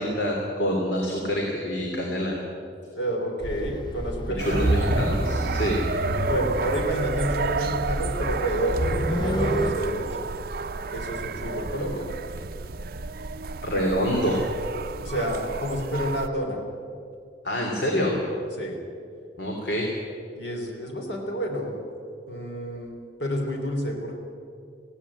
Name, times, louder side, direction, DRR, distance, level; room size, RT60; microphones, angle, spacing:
voice 1, 0.0-2.4 4.4-5.8 13.6-14.4 17.4-18.2 19.4-19.9, equal, 70° left, -1 dB, 3.1 m, -26 dB
voice 2, 2.9-4.9 6.2-10.2 10.9-12.1 15.0-16.6 18.5-18.8 20.3-21.8 22.3-22.9 23.2-24.1, equal, 90° left, 2 dB, 3.4 m, -29 dB
sound 1, 3.4-9.7, equal, 25° left, 1.3 m, -28 dB
sound 2, 4.4-16.3, right 4 dB, 55° right, 0.6 m, -32 dB
19.5 x 16.5 x 8.6 m, 2.5 s
head